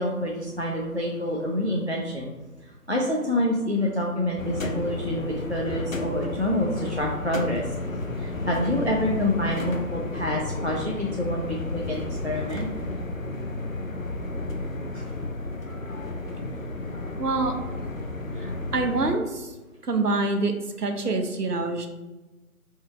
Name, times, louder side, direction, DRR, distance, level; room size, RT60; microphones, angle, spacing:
voice 1, 0.0-2.3 2.6-12.7 14.9-15.1 16.2-16.3, left 1 dB, 45° right, -2 dB, 0.4 m, -27 dB
sound 1, 4.4-19.1, left 2 dB, 60° left, 0.6 m, -32 dB
voice 2, 17.2-17.5 18.4-19.5 19.8-21.9, right 3 dB, 80° right, 5 dB, 0.8 m, -26 dB
4.4 x 3.3 x 3.5 m, 1.1 s
figure-of-eight pair, 165°, 47 cm